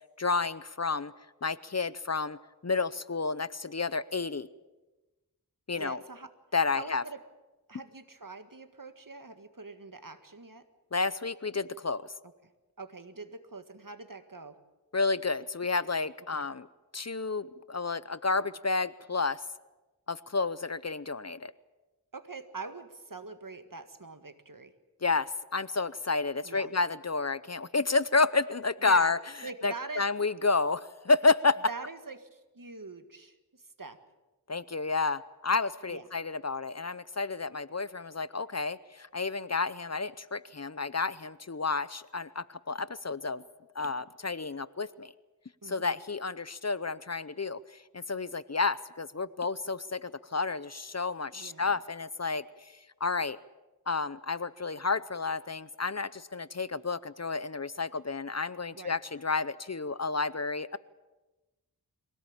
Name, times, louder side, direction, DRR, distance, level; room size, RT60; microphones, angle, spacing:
voice 1, 0.2-1.1 1.4-2.4 2.6-4.5 5.7-6.0 6.5-7.0 10.9-12.1 14.9-16.7 16.9-19.4 20.1-21.5 25.0-29.2 29.6-31.6 34.5-43.4 43.7-45.1 45.6-52.7 53.0-53.4 53.9-60.8, left 4 dB, 45° left, 17 dB, 0.7 m, -30 dB
voice 2, 5.7-6.3 6.7-7.2 7.7-10.6 12.8-14.5 16.3-16.5 22.1-24.7 26.4-26.7 28.8-29.1 29.4-30.0 31.7-34.0 35.9-36.0 45.6-46.0 51.3-51.8 58.7-59.0, right 3 dB, 60° right, 9 dB, 1.8 m, -44 dB
23.0 x 17.5 x 8.8 m, 1.1 s
wide cardioid pair, 40°, 38 cm